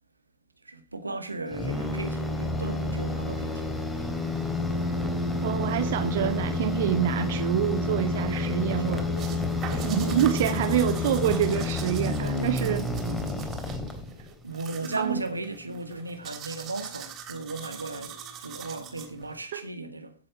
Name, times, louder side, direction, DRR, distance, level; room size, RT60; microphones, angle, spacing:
voice 1, 0.6-3.7 8.8-10.3 12.1-12.8 13.2-13.5 14.4-20.1, right 3 dB, 80° right, 1.8 m, -36 dB
sound 1, 1.5-14.3, left 2 dB, 10° left, 3.5 m, -29 dB
voice 2, 5.4-9.1 9.8-12.9 15.0-15.1 19.5-19.6, right 12 dB, 55° right, 1.0 m, -26 dB
sound 2, 9.2-19.4, right 9 dB, 35° right, 3.3 m, -43 dB
16.0 x 7.7 x 4.8 m
figure-of-eight pair, 90°, 0 cm